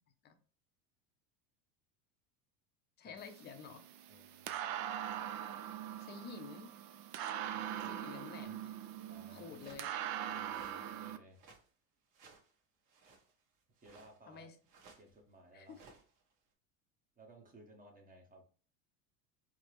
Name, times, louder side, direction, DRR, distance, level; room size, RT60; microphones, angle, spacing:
voice 1, 3.0-3.8 6.0-6.7 7.8-8.7 9.3-9.9 14.3-14.5 15.5-15.8, left 6 dB, 25° left, 0.5 m, -50 dB
sound 1, 3.2-11.2, right 10 dB, 80° right, 0.6 m, -42 dB
voice 2, 4.1-4.5 7.5-8.2 9.1-9.6 10.3-11.4 13.8-14.5 15.0-15.8 17.2-18.4, right 1 dB, 20° right, 0.7 m, -59 dB
sound 2, 9.5-9.9 10.4-10.8 11.3-11.7 12.1-12.5 12.9-13.3 13.8-14.3 14.7-15.2 15.7-16.3, right 4 dB, 45° right, 1.2 m, -60 dB
4.5 x 2.0 x 2.9 m
supercardioid pair, 115°, 45 cm